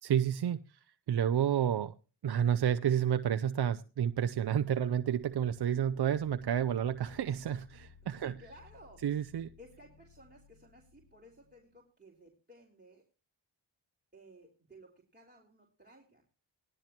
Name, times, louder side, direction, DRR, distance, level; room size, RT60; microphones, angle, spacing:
voice 1, 0.0-1.9 2.2-8.3 9.0-9.5, right 9 dB, 60° right, 0.7 m, -30 dB
sound 1, 4.2-11.8, left 5 dB, 40° left, 0.9 m, -60 dB
voice 2, 8.2-9.0 9.6-13.1 14.1-16.2, right 1 dB, 20° right, 3.7 m, -57 dB
18.5 x 11.5 x 2.9 m
cardioid pair, 45°, 46 cm